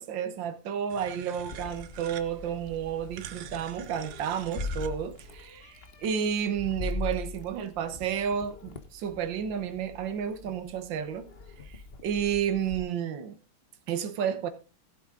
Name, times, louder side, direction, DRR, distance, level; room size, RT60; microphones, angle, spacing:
voice 1, 0.0-11.3 11.6-13.4 13.9-14.5, right 8 dB, 60° right, 1.8 m, -31 dB
sound 1, 0.9-5.4, right 11 dB, 85° right, 1.8 m, -46 dB
Meow, 1.5-12.8, left 3 dB, 35° left, 1.2 m, -41 dB
16.0 x 7.8 x 3.8 m
omnidirectional pair, 2.4 m